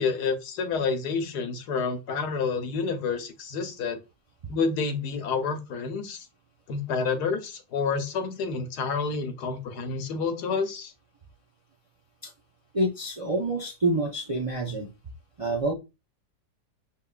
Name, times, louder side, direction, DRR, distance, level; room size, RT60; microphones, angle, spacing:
voice 1, 0.0-4.0 4.5-6.2 6.7-10.9, left 5 dB, 85° left, 1.4 m, -29 dB
voice 2, 12.7-14.9 15.4-15.7, right 2 dB, 45° right, 0.4 m, -27 dB
5.7 x 3.6 x 2.4 m
omnidirectional pair, 1.7 m